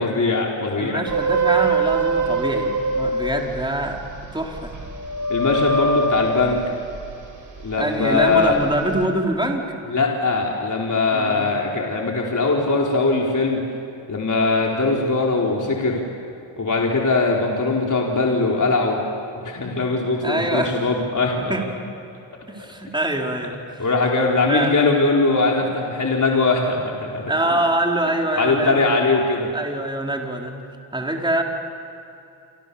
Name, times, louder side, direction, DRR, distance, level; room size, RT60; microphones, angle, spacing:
voice 1, 0.0-1.0 5.3-6.6 7.6-8.6 9.9-13.6 14.1-16.0 16.6-19.0 19.3-21.5 23.8-27.2 28.3-29.5, left 3 dB, 40° left, -1 dB, 4.5 m, -21 dB
voice 2, 0.8-4.0 4.3-4.7 7.8-9.7 11.1-11.6 20.2-20.8 21.5-21.7 22.5-23.8 24.4-24.8 27.3-28.9 29.5-30.6 30.9-31.4, right 1 dB, 10° right, 0 dB, 4.6 m, -24 dB
sound 1, 1.1-7.7 8.2-9.0, right 3 dB, 40° right, 6.0 m, -24 dB
28.5 x 27.5 x 7.2 m, 2.7 s
cardioid pair, 65°, 47 cm